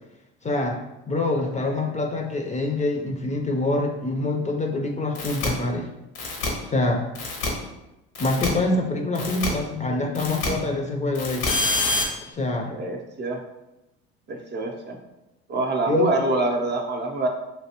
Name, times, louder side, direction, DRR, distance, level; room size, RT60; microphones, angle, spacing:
voice 1, 0.4-0.8 1.1-5.9 6.7-7.0 8.2-11.5 12.3-12.7 15.9-16.1, left 2 dB, 25° left, 2 dB, 0.5 m, -25 dB
sound 1, 5.1-5.5 6.1-6.5 7.1-7.5 8.1-8.5 9.1-9.5 10.1-10.5 11.1-12.0, left 2 dB, 80° left, 0.9 m, -26 dB
voice 2, 12.6-13.4 14.3-15.0 15.5-17.3, right 2 dB, 35° right, 2 dB, 0.6 m, -26 dB
3.3 x 2.8 x 2.8 m, 0.95 s
supercardioid pair, 80°, 30 cm